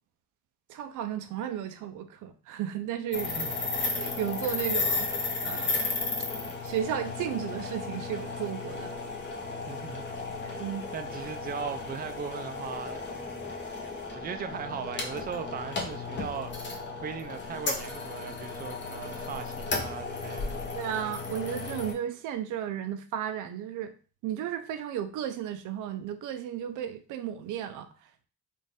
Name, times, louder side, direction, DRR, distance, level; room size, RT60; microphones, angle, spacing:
voice 1, 0.7-3.3 3.9-5.1 5.4-5.9 6.6-9.0 10.6-10.8 20.7-23.9 24.2-27.9, right 10 dB, 80° right, 0.5 m, -34 dB
sound 1, 3.1-21.9, left 3 dB, 35° left, 1.0 m, -34 dB
voice 2, 9.7-10.1 10.4-10.6 10.9-20.6, right 7 dB, 30° right, 0.4 m, -39 dB
4.1 x 2.5 x 3.5 m
cardioid pair, 90°, 30 cm